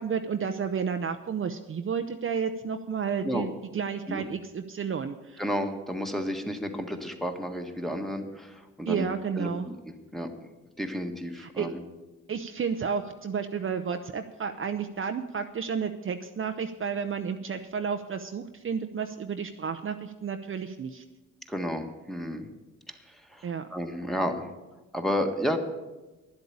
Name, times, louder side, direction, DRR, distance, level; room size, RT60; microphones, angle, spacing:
voice 1, 0.0-5.4 8.9-9.7 11.4-11.7 12.3-21.0 23.4-23.7, right 6 dB, 40° right, 7 dB, 0.7 m, -31 dB
voice 2, 5.4-9.1 9.4-9.7 10.1-10.3 10.8-11.8 21.5-22.5 22.9-24.5 24.9-25.6, equal, ahead, 3 dB, 1.6 m, -32 dB
11.0 x 8.0 x 8.6 m, 1.1 s
cardioid pair, 75°, 33 cm